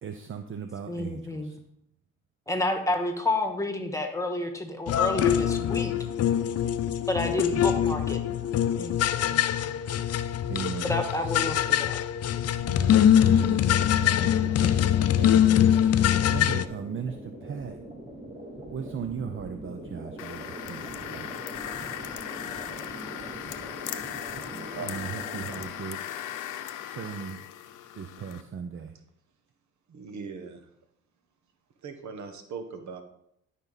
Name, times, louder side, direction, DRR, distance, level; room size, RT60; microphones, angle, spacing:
voice 1, 0.0-1.6 10.5-10.9 12.6-14.9 15.2-15.7 16.3-17.8 18.7-21.4 24.8-26.0 26.8-27.5 27.9-29.0, right 7 dB, 45° right, 0.7 m, -37 dB
voice 2, 0.9-1.5 2.5-5.9 7.1-8.2 8.8-8.9 9.3-9.7 10.8-12.0, left 1 dB, 10° left, 1.5 m, -30 dB
sound 1, 4.9-16.7, left 10 dB, 55° left, 0.6 m, -23 dB
sound 2, 12.6-25.6, right 1 dB, 20° right, 2.6 m, -43 dB
sound 3, 20.2-28.4, left 11 dB, 85° left, 0.8 m, -38 dB
voice 3, 24.3-25.0 29.9-30.7 31.8-33.0, right 5 dB, 70° right, 1.4 m, -40 dB
11.5 x 5.5 x 4.1 m
cardioid pair, 90°, 30 cm